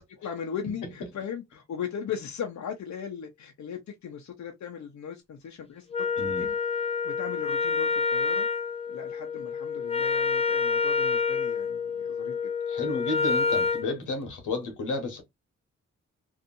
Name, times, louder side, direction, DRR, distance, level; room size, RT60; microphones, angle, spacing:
voice 1, 0.2-5.9 6.2-6.6 7.0-8.5 8.9-12.4, left 7 dB, 65° left, 0.7 m, -38 dB
Wind instrument woodwind instrument, 5.9-13.9, left 5 dB, 20° left, 0.7 m, -28 dB
voice 2, 6.2-6.5 12.7-15.2, left 3 dB, 90° left, 1.1 m, -32 dB
2.7 x 2.5 x 2.5 m
supercardioid pair, 50°, 30 cm